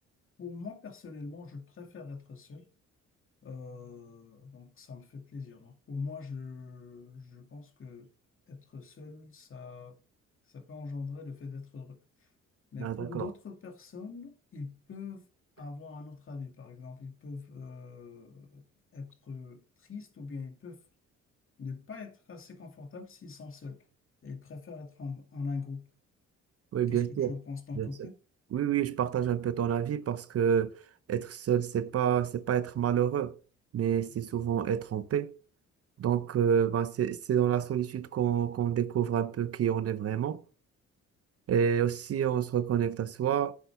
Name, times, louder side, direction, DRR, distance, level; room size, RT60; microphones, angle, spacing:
voice 1, 0.4-2.7 3.4-8.1 8.5-10.0 10.5-12.0 12.7-15.3 15.6-18.6 18.9-20.8 21.6-23.8 24.2-25.8 26.9-28.2, left 4 dB, 45° left, 2.3 m, -42 dB
voice 2, 12.8-13.3 26.7-27.3 27.8-27.9 28.5-30.7 31.1-33.3 33.7-35.3 36.0-40.4 41.5-43.5, right 9 dB, 50° right, 0.7 m, -28 dB
9.6 x 8.3 x 3.4 m
cardioid pair, 90°, 30 cm